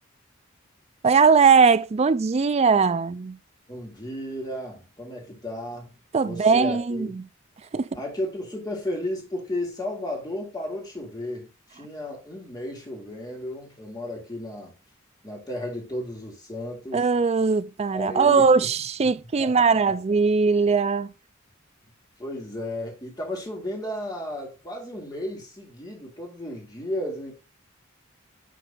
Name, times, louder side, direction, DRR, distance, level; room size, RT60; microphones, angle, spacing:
voice 1, 1.0-3.4 6.1-7.2 7.7-7.9 16.9-21.1, right 5 dB, 30° right, 0.4 m, -20 dB
voice 2, 3.7-5.9 6.2-7.1 7.9-14.7 15.2-17.0 17.9-18.7 19.4-19.5 22.2-27.3, left 1 dB, 20° left, 3.1 m, -34 dB
10.0 x 4.5 x 3.8 m
head